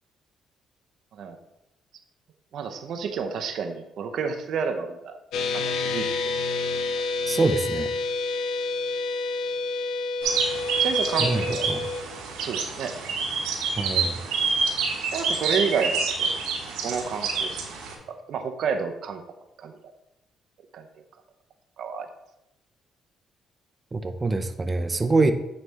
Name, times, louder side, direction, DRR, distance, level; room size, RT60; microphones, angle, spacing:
voice 1, 2.5-5.2 5.5-6.3 10.8-11.7 12.4-12.9 15.1-16.3 16.8-17.6 18.1-19.2 19.6-19.7 20.7-20.9 21.8-22.1, right 6 dB, 70° right, 6 dB, 0.7 m, -30 dB
sound 1, 5.3-12.0, left 3 dB, 80° left, 0.6 m, -28 dB
voice 2, 7.3-7.9 11.2-11.9 13.8-14.2 23.9-25.3, right 3 dB, 25° right, 8 dB, 0.6 m, -25 dB
sound 2, 10.2-17.9, right 4 dB, 85° right, 1.2 m, -27 dB
9.1 x 3.2 x 3.4 m, 0.88 s
supercardioid pair, 65°, 0 cm